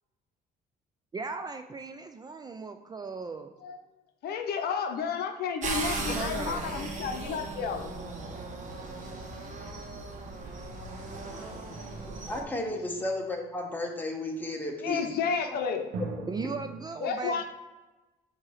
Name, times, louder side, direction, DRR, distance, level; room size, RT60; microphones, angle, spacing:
voice 1, 1.1-3.5 6.1-6.9 16.3-17.4, right 4 dB, 25° right, 7 dB, 0.4 m, -37 dB
voice 2, 4.2-7.9 12.7-12.8 14.8-15.9 17.0-17.4, left 6 dB, 70° left, 6 dB, 0.7 m, -31 dB
sound 1, 5.6-12.4, right 3 dB, 45° right, 1.3 m, -37 dB
sound 2, 11.6-13.4 15.9-16.9, right 3 dB, 85° right, 1.1 m, -41 dB
voice 3, 12.3-15.1, left 1 dB, 10° left, 1 dB, 1.2 m, -33 dB
7.4 x 2.9 x 4.8 m, 1.1 s
cardioid pair, 110°, 17 cm